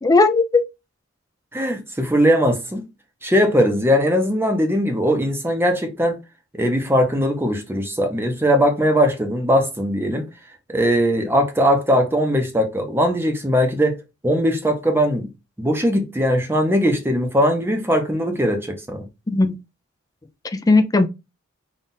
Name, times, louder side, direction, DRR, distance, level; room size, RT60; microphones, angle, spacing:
voice 1, 0.0-0.6 19.3-19.6 20.4-21.1, left 3 dB, 15° left, 0.4 m, -16 dB
voice 2, 1.5-2.8 3.2-6.2 6.5-10.3 10.7-15.3 15.6-19.1, equal, 10° right, 0.7 m, -20 dB
3.9 x 2.4 x 3.9 m
head